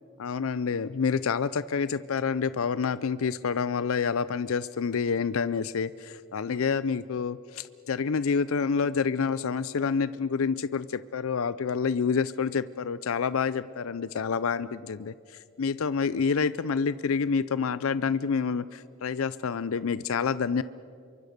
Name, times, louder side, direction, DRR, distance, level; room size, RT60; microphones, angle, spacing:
voice 1, 0.2-20.6, left 5 dB, 75° left, 16 dB, 0.5 m, -28 dB
27.0 x 24.0 x 6.6 m, 2.6 s
head